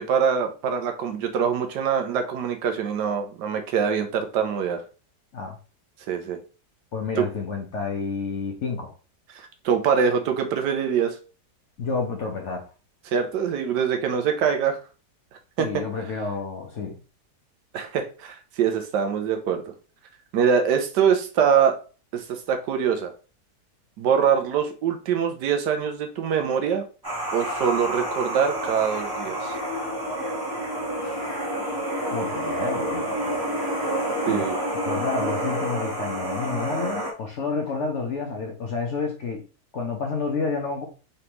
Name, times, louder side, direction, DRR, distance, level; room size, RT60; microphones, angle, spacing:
voice 1, 0.0-4.8 6.1-6.4 7.2-7.3 9.3-11.2 13.1-14.8 15.6-15.7 17.7-19.6 20.3-21.7 22.1-23.1 24.0-26.8 27.3-29.5 34.3-34.6, right 7 dB, 85° right, 1.3 m, -24 dB
voice 2, 6.9-8.9 11.8-12.7 15.6-17.0 31.0-31.3 32.1-33.4 34.3-34.5 34.8-39.4 39.7-40.8, left 4 dB, 60° left, 0.8 m, -30 dB
sound 1, 27.0-37.1, right 1 dB, 15° right, 1.1 m, -28 dB
3.9 x 3.4 x 2.9 m
omnidirectional pair, 1.8 m